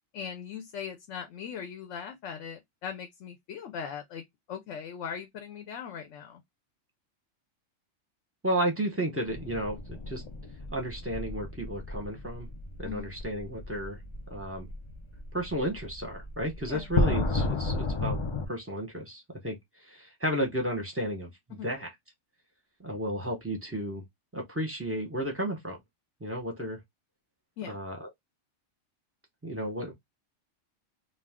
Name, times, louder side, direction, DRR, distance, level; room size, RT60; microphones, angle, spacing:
voice 1, 0.1-6.4 12.8-13.1 16.6-16.9 21.5-21.7 27.6-27.8, left 7 dB, 70° left, 0.9 m, -40 dB
voice 2, 8.4-9.8 10.1-10.2 10.7-12.5 12.8-14.0 14.3-14.7 15.3-18.2 18.5-19.6 19.9-21.9 22.8-24.0 24.3-25.8 26.2-26.8 27.7-28.1 29.4-29.9, right 1 dB, 15° right, 0.7 m, -33 dB
sound 1, 9.3-18.5, left 3 dB, 55° left, 0.3 m, -33 dB
2.4 x 2.3 x 3.4 m
omnidirectional pair, 1.3 m